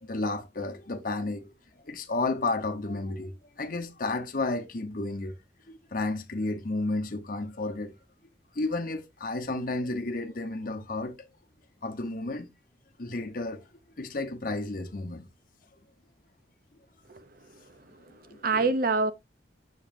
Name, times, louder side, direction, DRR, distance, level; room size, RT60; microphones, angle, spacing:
voice 1, 0.0-1.5 1.9-5.3 5.7-7.9 8.5-11.2 11.8-12.5 13.0-13.6 14.0-15.3 18.3-18.6, left 2 dB, 50° left, 1.0 m, -32 dB
voice 2, 17.6-19.1, right 3 dB, 50° right, 0.7 m, -28 dB
7.1 x 6.5 x 2.6 m
head